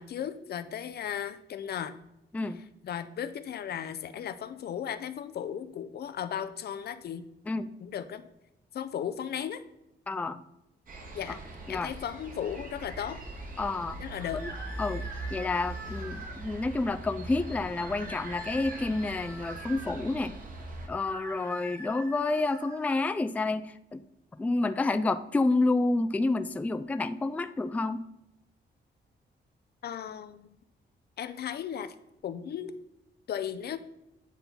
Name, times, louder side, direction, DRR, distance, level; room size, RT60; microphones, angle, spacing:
voice 1, 0.0-1.9 2.8-7.2 7.8-8.3 8.7-9.6 11.1-11.4 11.7-13.2 14.0-14.4 29.8-30.5 31.2-31.9 32.2-32.8 33.3-33.8, left 9 dB, 60° left, 12 dB, 0.6 m, -36 dB
voice 2, 10.1-10.4 11.3-11.4 11.7-11.9 13.6-14.0 14.3-14.5 14.8-15.0 15.3-20.4 20.9-24.0 24.4-28.0, left 2 dB, 10° left, 11 dB, 0.3 m, -29 dB
sound 1, 10.9-20.9, right 1 dB, 50° right, 1.7 m, -41 dB
sound 2, 14.1-16.4 17.8-20.0 20.9-23.0, right 1 dB, 70° right, 2.7 m, -44 dB
9.1 x 4.3 x 5.3 m, 0.90 s
wide cardioid pair, 145°, 18 cm